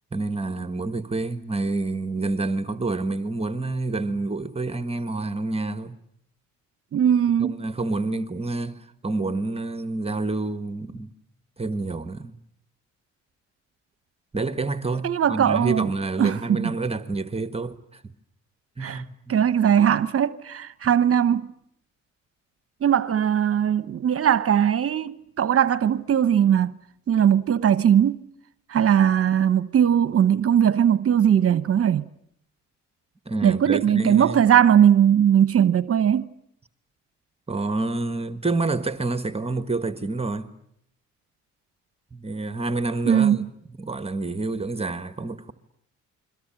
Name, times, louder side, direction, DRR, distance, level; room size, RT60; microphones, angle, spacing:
voice 1, 0.1-6.0 7.4-11.1 11.6-12.3 14.3-18.0 18.8-19.4 33.2-34.4 37.5-40.5 42.1-43.4 43.8-45.5, right 3 dB, 20° right, 1.5 m, -28 dB
voice 2, 6.9-7.6 15.0-15.9 16.2-16.7 18.8-19.0 19.3-21.5 22.8-26.7 27.1-28.3 28.7-32.1 33.4-36.3 43.0-43.4, right 9 dB, 50° right, 1.0 m, -19 dB
29.0 x 23.0 x 8.9 m
cardioid pair, 90°, 30 cm